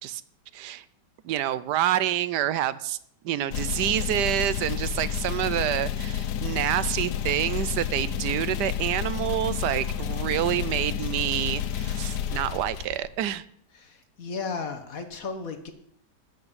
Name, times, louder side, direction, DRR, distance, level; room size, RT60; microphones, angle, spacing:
voice 1, 0.5-0.8 1.2-3.0 3.2-13.4, right 12 dB, 75° right, 16 dB, 1.2 m, -27 dB
sound 1, 3.5-13.3, left 9 dB, 75° left, 1.3 m, -30 dB
voice 2, 13.7-15.7, left 4 dB, 55° left, 7 dB, 1.8 m, -34 dB
13.5 x 6.1 x 8.1 m, 0.68 s
omnidirectional pair, 1.9 m